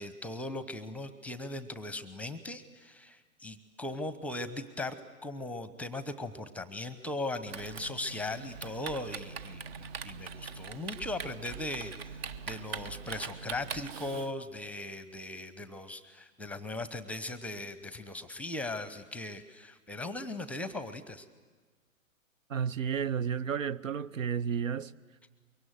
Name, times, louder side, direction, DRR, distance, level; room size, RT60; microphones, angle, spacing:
voice 1, 0.0-11.9 12.5-21.3, left 2 dB, 5° left, 0.9 m, -39 dB
Typing, 7.5-14.3, right 6 dB, 45° right, 1.1 m, -42 dB
voice 2, 22.5-24.9, right 7 dB, 65° right, 0.8 m, -32 dB
24.0 x 23.0 x 9.4 m
figure-of-eight pair, 115°, 41 cm